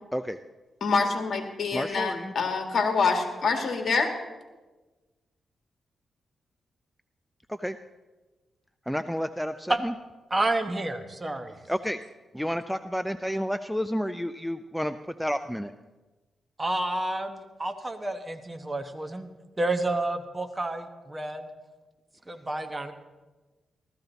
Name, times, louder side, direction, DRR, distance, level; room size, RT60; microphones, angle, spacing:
voice 1, 0.8-4.1, left 4 dB, 60° left, 4 dB, 1.8 m, -26 dB
voice 2, 1.7-2.3 7.5-7.8 8.9-9.9 11.7-12.0 12.3-15.7, equal, ahead, 10 dB, 0.4 m, -30 dB
voice 3, 10.3-11.6 16.6-19.3 19.6-21.5 22.3-22.9, right 2 dB, 20° right, 7 dB, 1.0 m, -30 dB
15.5 x 13.0 x 4.0 m, 1.2 s
cardioid pair, 105°, 0 cm